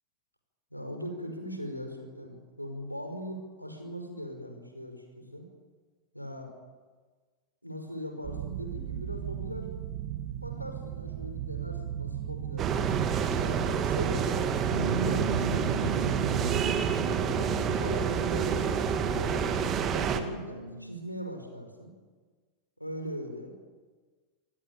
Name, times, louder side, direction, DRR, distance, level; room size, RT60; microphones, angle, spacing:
voice 1, 0.7-5.5 6.1-6.5 7.6-9.7 10.4-12.8 13.3-14.6 14.9-16.4 17.1-19.4 19.9-21.9 22.8-23.5, equal, 90° left, 4 dB, 5.6 m, -40 dB
sound 1, 8.2-16.6, right 11 dB, 50° right, 1.5 m, -36 dB
sound 2, 12.6-20.2, right 7 dB, 30° right, 2.3 m, -28 dB
Bass guitar, 14.7-21.0, equal, 90° right, 1.3 m, -39 dB
27.0 x 18.5 x 8.9 m, 1.4 s
figure-of-eight pair, 90°, 0 cm